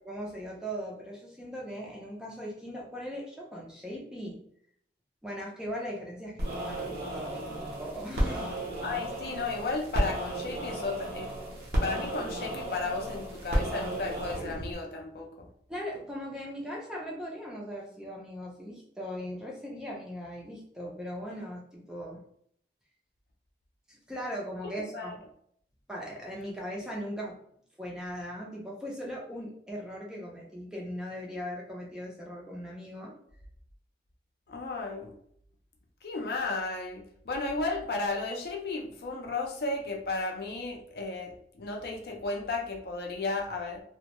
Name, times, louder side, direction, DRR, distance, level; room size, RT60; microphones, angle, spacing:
voice 1, 0.1-4.4 5.2-8.6 15.7-22.2 23.9-25.2 25.9-27.4 27.8-33.1, equal, 5° right, -3 dB, 0.4 m, -39 dB
sound 1, 6.4-14.7, right 1 dB, 60° right, 0.7 m, -33 dB
voice 2, 8.8-11.3 11.8-15.5 24.9-25.1 34.5-35.1 36.0-43.8, left 3 dB, 60° left, 1 dB, 0.4 m, -34 dB
2.2 x 2.1 x 2.8 m, 0.67 s
head